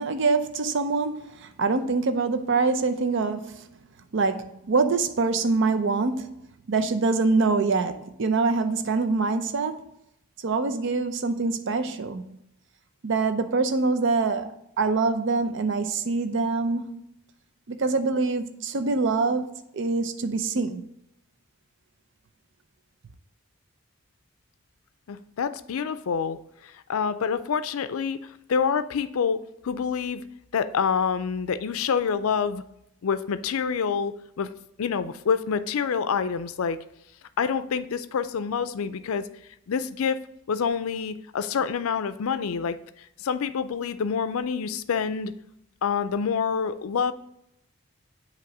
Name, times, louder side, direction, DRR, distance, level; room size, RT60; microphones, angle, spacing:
voice 1, 0.0-3.7 4.1-9.9 10.4-12.4 13.0-17.0 17.7-19.5 19.7-20.8, right 3 dB, 60° right, 0.5 m, -25 dB
voice 2, 25.1-28.2 28.5-30.2 30.5-32.6 33.0-34.5 34.8-36.8 37.4-39.3 39.7-40.2 40.5-45.3 45.8-47.1, left 6 dB, 85° left, 0.4 m, -27 dB
7.6 x 3.0 x 5.9 m
head